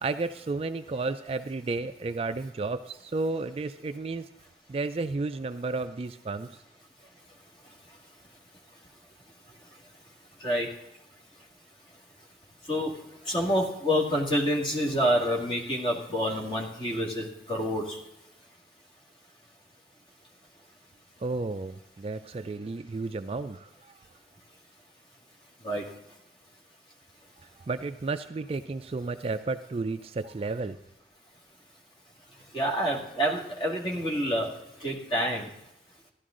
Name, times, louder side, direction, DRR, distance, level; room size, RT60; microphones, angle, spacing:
voice 1, 0.0-4.3 4.7-6.5 21.2-23.7 27.7-30.8, right 3 dB, 35° right, 9 dB, 0.3 m, -32 dB
voice 2, 13.3-18.0 25.6-25.8 32.5-34.5 34.8-35.5, equal, 30° left, -1 dB, 1.9 m, -27 dB
14.0 x 11.5 x 3.7 m, 0.85 s
head